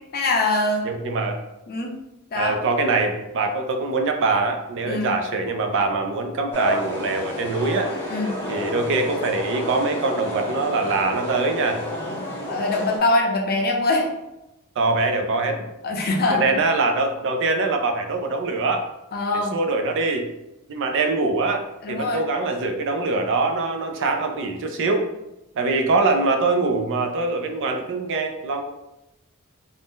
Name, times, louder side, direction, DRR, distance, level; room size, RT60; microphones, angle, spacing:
voice 1, 0.1-0.8 1.7-2.0 2.3-2.6 4.8-5.1 8.1-8.4 12.5-14.1 15.8-16.6 19.1-19.6 21.8-22.3, left 2 dB, 45° left, 1 dB, 0.5 m, -23 dB
voice 2, 0.8-1.4 2.3-7.9 8.5-11.8 14.8-15.7 16.3-18.9 19.3-20.3 20.7-25.1 25.6-28.6, right 3 dB, 60° right, 5 dB, 0.4 m, -23 dB
sound 1, 6.5-13.0, equal, 10° left, 0.7 m, -30 dB
2.6 x 2.0 x 3.5 m, 0.93 s
head